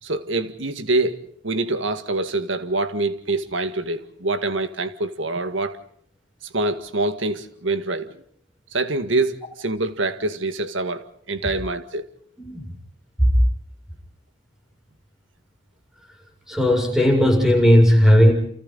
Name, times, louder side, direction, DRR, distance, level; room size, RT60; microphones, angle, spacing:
voice 1, 0.0-5.8 6.5-8.2 8.7-12.1, right 2 dB, 80° right, 1.9 m, -25 dB
voice 2, 16.5-18.3, equal, 5° right, 7.2 m, -15 dB
30.0 x 28.5 x 4.1 m
head